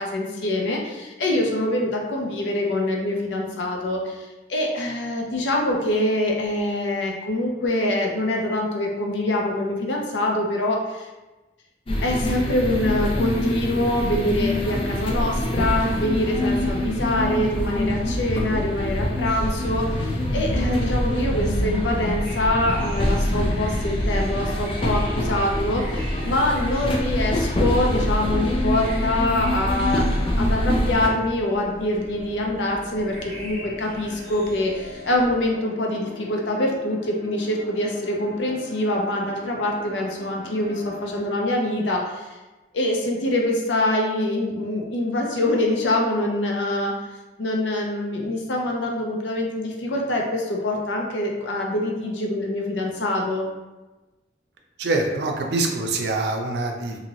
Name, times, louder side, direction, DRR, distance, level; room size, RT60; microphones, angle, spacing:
voice 1, 0.0-11.1 12.0-30.1 30.4-42.3 42.7-46.9 47.4-53.5, left 1 dB, 80° left, 0 dB, 0.6 m, -24 dB
sound 1, 11.9-31.1, left 1 dB, 30° left, 0.4 m, -25 dB
sound 2, 19.2-35.5, equal, 5° left, 0.7 m, -42 dB
sound 3, 31.4-41.2, left 1 dB, 65° left, 1.2 m, -41 dB
voice 2, 54.8-57.0, right 2 dB, 65° right, 2 dB, 0.5 m, -24 dB
2.9 x 2.7 x 2.7 m, 1.1 s
head